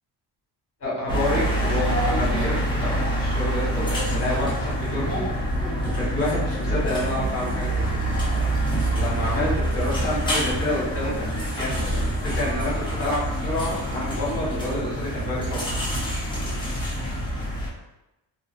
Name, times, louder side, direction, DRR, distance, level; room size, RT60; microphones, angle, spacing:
voice 1, 0.8-5.3 5.9-7.8 9.0-11.9 12.2-15.6, left 1 dB, 30° left, -7 dB, 1.1 m, -29 dB
sound 1, 1.1-17.7, right 1 dB, 10° left, 0.4 m, -26 dB
2.6 x 2.3 x 2.3 m, 0.98 s
wide cardioid pair, 165°, 45 cm